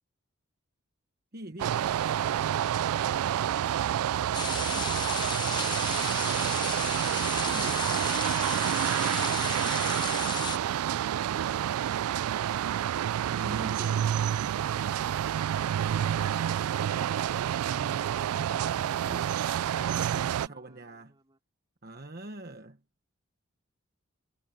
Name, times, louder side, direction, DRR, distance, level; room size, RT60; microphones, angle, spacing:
voice 1, 1.3-1.8 4.7-5.0 7.4-8.3 13.3-15.1 17.5-19.3 19.7-21.1 21.8-22.8, right 2 dB, 45° right, 1.2 m, -44 dB
sound 1, 1.6-20.5, right 10 dB, 90° right, 0.3 m, -28 dB
sound 2, 4.3-10.6, left 7 dB, 20° left, 0.4 m, -35 dB
voice 2, 20.4-21.4, right 1 dB, 20° right, 4.3 m, -61 dB
head